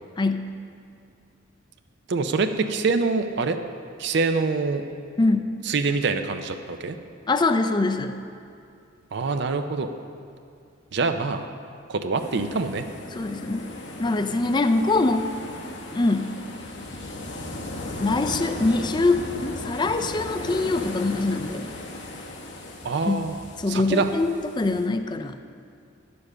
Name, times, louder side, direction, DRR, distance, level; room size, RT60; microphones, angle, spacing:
voice 1, 0.2-0.5 5.2-5.5 7.3-8.2 13.1-13.7 14.0-15.2 15.9-16.3 18.0-21.7 23.1-23.2 23.6-25.4, left 3 dB, 25° left, 8 dB, 0.4 m, -23 dB
voice 2, 2.1-3.6 4.0-4.8 5.6-7.0 9.1-9.9 10.9-11.5 11.9-12.9 22.8-23.4 23.7-24.1, right 4 dB, 60° right, 7 dB, 0.5 m, -25 dB
sound 1, 12.1-24.9, left 1 dB, 65° left, 1.0 m, -37 dB
9.8 x 7.0 x 6.6 m, 2.4 s
head